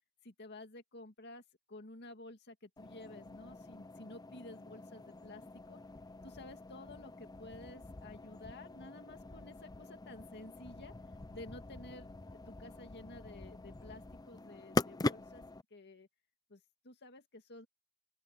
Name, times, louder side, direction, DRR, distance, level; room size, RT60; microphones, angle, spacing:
voice 1, 0.2-1.4 1.7-5.8 6.2-10.9 11.3-15.4 15.7-16.1 16.5-17.7, left 2 dB, 50° left, 2.1 m, -52 dB
sound 1, 2.8-15.6, left 2 dB, 20° left, 0.5 m, -43 dB
open air
head